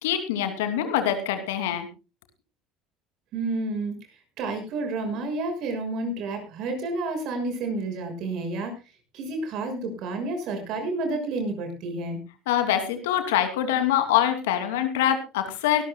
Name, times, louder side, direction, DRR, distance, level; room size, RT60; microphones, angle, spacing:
voice 1, 0.0-1.9 12.5-15.8, left 10 dB, 80° left, 8 dB, 2.6 m, -24 dB
voice 2, 3.3-4.0 4.4-8.8 9.1-12.2, right 2 dB, 60° right, 6 dB, 6.0 m, -30 dB
22.5 x 13.0 x 2.3 m, 0.28 s
hypercardioid pair, 75°, 0 cm